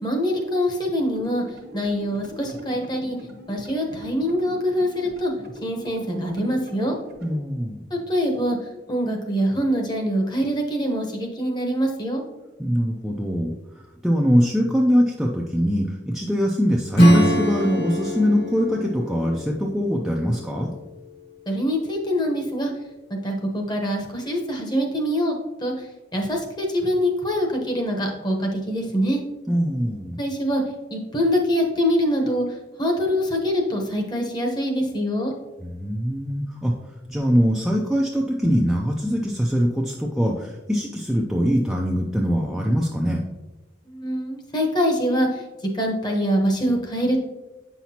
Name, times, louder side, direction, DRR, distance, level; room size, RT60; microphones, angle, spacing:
voice 1, 0.0-1.4 1.7-3.2 3.5-5.3 5.6-6.9 7.9-8.6 8.9-12.2 21.5-22.7 23.2-25.3 25.6-25.7 26.1-29.2 30.2-30.6 30.9-32.4 32.8-35.3 43.9-45.4 45.7-47.2, equal, 25° left, 2 dB, 1.0 m, -24 dB
sound 1, 1.0-7.4, left 1 dB, 55° right, 0.9 m, -42 dB
voice 2, 7.2-7.8 12.6-20.7 29.5-30.2 35.6-43.2, equal, ahead, -2 dB, 0.4 m, -23 dB
Acoustic guitar / Strum, 16.9-21.2, equal, 60° left, 1.7 m, -22 dB
8.1 x 5.8 x 2.8 m, 1.1 s
head